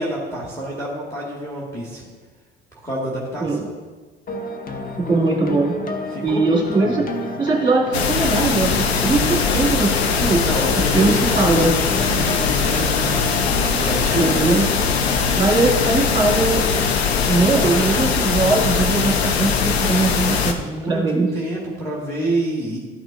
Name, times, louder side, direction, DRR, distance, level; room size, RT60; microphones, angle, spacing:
voice 1, 0.0-2.1 2.8-3.6 6.1-7.0 9.2-9.6 10.4-11.5 12.0-12.9 13.7-14.4 17.5-18.2 20.5-21.0 21.3-22.8, right 1 dB, 10° left, -5 dB, 2.1 m, -27 dB
sound 1, 4.3-17.1, left 2 dB, 30° left, 0.9 m, -31 dB
voice 2, 5.0-5.7 6.2-7.0 7.4-10.4 10.9-11.7 14.2-14.6 15.3-16.7 17.3-20.6 20.8-21.3, right 3 dB, 15° right, -2 dB, 2.4 m, -20 dB
sound 2, 7.9-20.5, left 5 dB, 80° left, 0.7 m, -20 dB
12.5 x 6.0 x 2.6 m, 1.4 s
figure-of-eight pair, 60°, 32 cm